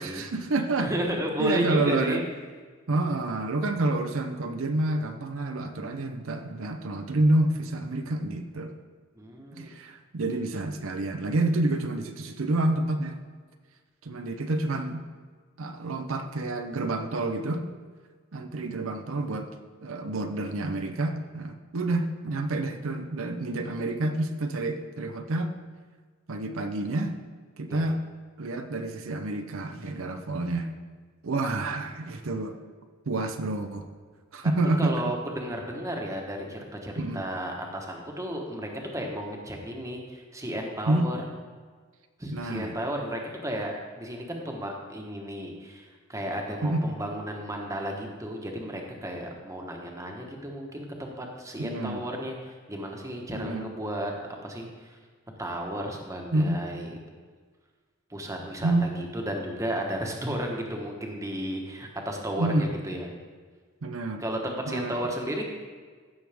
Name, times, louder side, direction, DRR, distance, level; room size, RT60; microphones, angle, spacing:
voice 1, 0.0-0.9 1.4-2.2 2.9-8.7 9.5-13.2 14.0-15.1 15.6-17.7 18.3-19.5 19.8-25.5 26.3-27.1 27.6-28.0 28.4-30.7 31.2-32.6 33.1-33.9 34.3-35.0 37.0-37.2 40.9-41.1 42.3-42.8 46.6-46.9 51.6-52.0 53.3-53.7 56.3-56.6 58.6-58.9 62.4-62.7 63.8-64.2 64.7-65.0, right 2 dB, 80° right, 6 dB, 0.7 m, -28 dB
voice 2, 0.8-2.2 9.2-9.7 27.7-27.9 34.8-41.2 42.2-54.1 54.4-55.0 55.4-57.0 58.1-63.1 64.2-65.4, equal, 15° right, 1 dB, 1.2 m, -33 dB
15.5 x 6.3 x 3.5 m, 1.5 s
head